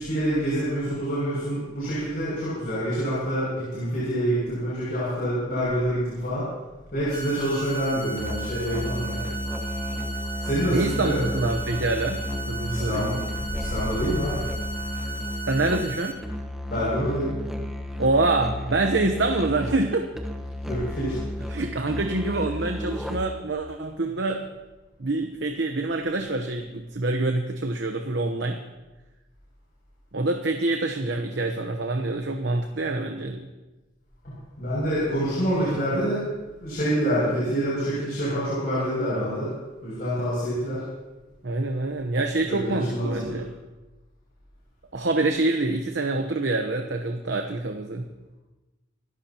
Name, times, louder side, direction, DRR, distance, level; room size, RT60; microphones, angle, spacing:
voice 1, 0.0-6.4 6.9-9.1 10.4-11.2 12.7-13.2 13.6-14.4 16.7-17.3 20.7-21.1 34.6-36.2 36.6-39.5 39.8-40.8 42.5-43.1, equal, 50° left, -9 dB, 6.9 m, -26 dB
sound 1, 7.1-16.1, right 3 dB, 25° left, 1.5 m, -36 dB
Musical instrument, 8.2-23.5, left 1 dB, ahead, 1.2 m, -33 dB
voice 2, 9.1-9.4 10.7-13.2 15.4-16.2 18.0-20.1 21.5-24.4 25.0-28.6 30.1-33.5 35.7-35.8 41.4-43.5 44.9-48.0, right 2 dB, 65° right, 4 dB, 1.0 m, -26 dB
27.0 x 13.5 x 3.0 m, 1.1 s
head